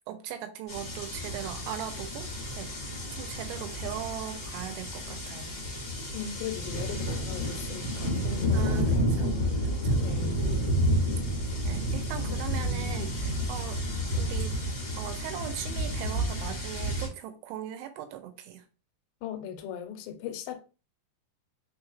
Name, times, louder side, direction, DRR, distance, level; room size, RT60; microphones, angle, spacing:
voice 1, 0.1-2.3 2.6-2.7 3.1-5.6 8.5-10.0 11.6-13.8 14.1-14.6 15.0-18.6, right 10 dB, 85° right, 2.7 m, -39 dB
sound 1, 0.7-17.1, equal, 35° left, 0.7 m, -30 dB
voice 2, 6.1-9.2 10.0-10.4 19.2-20.6, left 8 dB, 90° left, 2.9 m, -39 dB
6.1 x 3.1 x 2.3 m
omnidirectional pair, 4.8 m